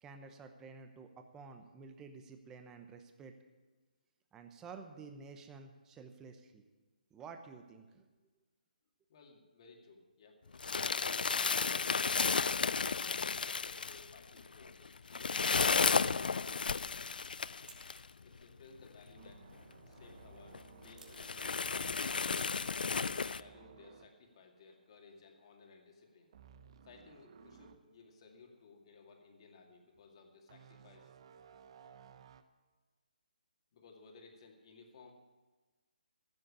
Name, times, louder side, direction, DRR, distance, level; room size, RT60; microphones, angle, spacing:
voice 1, 0.0-3.3 4.3-6.6 7.1-8.0, right 5 dB, 10° right, 6 dB, 0.9 m, -51 dB
voice 2, 9.1-10.4 13.4-16.9 18.1-19.5 19.9-21.3 22.5-26.3 26.8-31.1 33.7-35.1, left 4 dB, 40° left, 2 dB, 2.3 m, -59 dB
sound 1, 10.5-18.0 18.8-18.9 19.3-19.4 20.0-20.1 20.5-20.6 21.1-23.4, left 5 dB, 75° left, 0.4 m, -33 dB
sound 2, 19.2-25.2 25.5-25.8 26.3-27.8 28.3-28.4 30.5-32.4, right 7 dB, 35° right, 0.8 m, -58 dB
sound 3, 20.1-23.0, right 4 dB, 65° right, 2.8 m, -62 dB
15.5 x 7.6 x 8.5 m, 1.3 s
hypercardioid pair, 160°, 5 cm